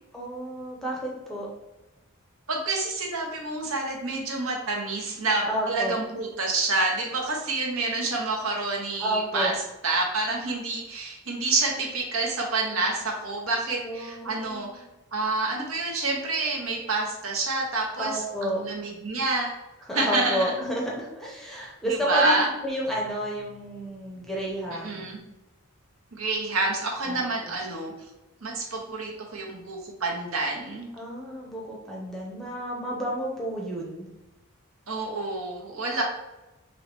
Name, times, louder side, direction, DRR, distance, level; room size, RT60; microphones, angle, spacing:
voice 1, 0.1-1.5 5.4-6.0 9.0-9.5 13.8-14.8 18.0-18.6 19.8-25.2 27.0-27.6 31.0-34.1, equal, ahead, -3 dB, 0.7 m, -31 dB
voice 2, 2.5-9.5 9.8-14.8 15.1-19.5 19.9-20.5 21.8-22.5 24.8-25.2 26.2-27.9 28.4-30.9 34.9-36.0, right 3 dB, 70° right, -1 dB, 0.9 m, -28 dB
3.9 x 3.1 x 3.4 m, 1.0 s
head